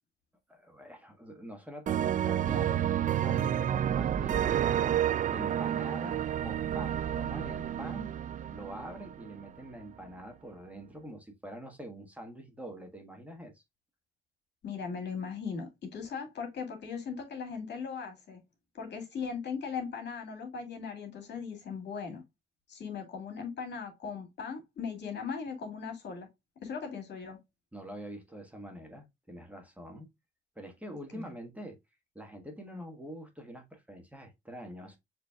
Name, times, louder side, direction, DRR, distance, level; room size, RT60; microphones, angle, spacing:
voice 1, 0.5-2.8 3.2-4.9 5.3-8.1 8.5-13.6 27.7-30.1 30.5-31.8 32.1-35.0, right 1 dB, 5° right, 1.5 m, -45 dB
sound 1, 1.9-9.5, right 10 dB, 40° right, 0.4 m, -30 dB
voice 2, 14.6-18.4 18.7-22.2 22.7-26.3 26.6-27.4 31.1-31.3, left 6 dB, 60° left, 2.3 m, -38 dB
6.6 x 3.3 x 2.3 m
cardioid pair, 90°, 20 cm